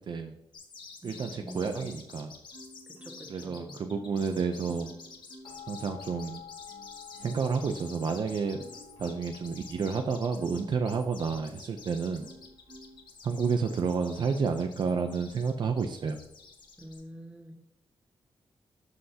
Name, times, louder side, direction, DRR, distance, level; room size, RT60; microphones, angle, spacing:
voice 1, 0.1-0.4 1.0-2.3 3.3-4.9 5.7-6.4 7.2-8.6 9.0-12.3 13.2-16.2, right 5 dB, 55° right, 6 dB, 0.6 m, -30 dB
sound 1, 0.5-17.0, left 4 dB, 60° left, 1.3 m, -49 dB
voice 2, 1.0-2.0 2.9-3.8 16.8-17.5, equal, 15° right, 1 dB, 1.5 m, -46 dB
Marimba xylophone, 1.1-2.1 2.5-4.3 4.8-5.7 6.2-11.7 12.2-13.1 13.6-13.9, right 2 dB, 80° right, 1.6 m, -53 dB
sound 2, 5.4-16.9, left 9 dB, 85° left, 1.8 m, -52 dB
11.5 x 5.5 x 2.8 m, 0.81 s
wide cardioid pair, 110°, 9 cm